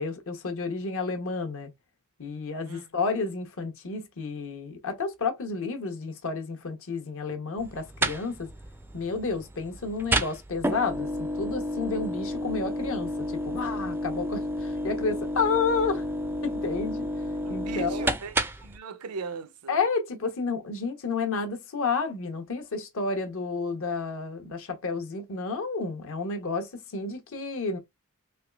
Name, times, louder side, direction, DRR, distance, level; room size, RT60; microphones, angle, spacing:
voice 1, 0.0-1.7 2.2-8.5 8.9-16.0 16.4-17.1 17.5-18.0 19.7-27.8, left 4 dB, 65° left, 0.8 m, -31 dB
sound 1, 7.6-18.8, equal, 10° right, 0.3 m, -31 dB
voice 2, 17.4-18.4 18.6-19.8, right 4 dB, 90° right, 0.6 m, -38 dB
3.4 x 3.1 x 2.3 m
head